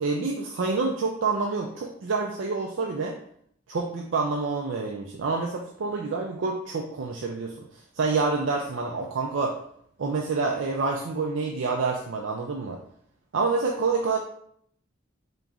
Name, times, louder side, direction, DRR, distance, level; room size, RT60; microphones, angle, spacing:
voice 1, 0.0-3.1 3.7-7.7 7.9-9.6 10.0-12.8 13.3-14.2, right 4 dB, 65° right, 1 dB, 0.5 m, -27 dB
3.8 x 3.0 x 3.6 m, 0.66 s
head